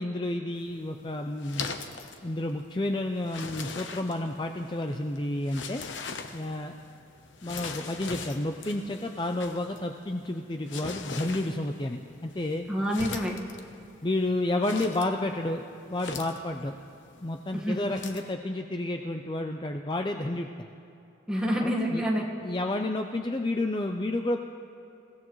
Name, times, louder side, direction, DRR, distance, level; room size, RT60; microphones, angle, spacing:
voice 1, 0.0-1.7 2.2-5.8 6.3-6.7 7.4-12.7 14.0-15.6 15.9-16.7 17.2-20.7 21.6-22.0 22.4-24.4, left 1 dB, 25° left, 4 dB, 0.5 m, -30 dB
sound 1, 0.5-18.3, left 4 dB, 90° left, 1.0 m, -42 dB
voice 2, 12.7-13.4 17.5-17.9 21.3-22.3, equal, 5° right, -2 dB, 1.5 m, -28 dB
28.5 x 16.0 x 3.1 m, 2.8 s
head